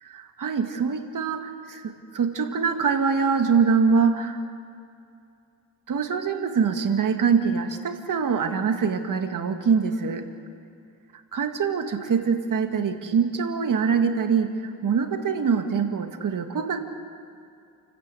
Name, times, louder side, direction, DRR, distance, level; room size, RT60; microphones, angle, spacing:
voice 1, 0.4-4.4 5.9-10.3 11.3-14.5 14.8-16.8, right 6 dB, 65° right, 6 dB, 2.0 m, -24 dB
29.0 x 14.0 x 8.5 m, 2.5 s
cardioid pair, 90°, 35 cm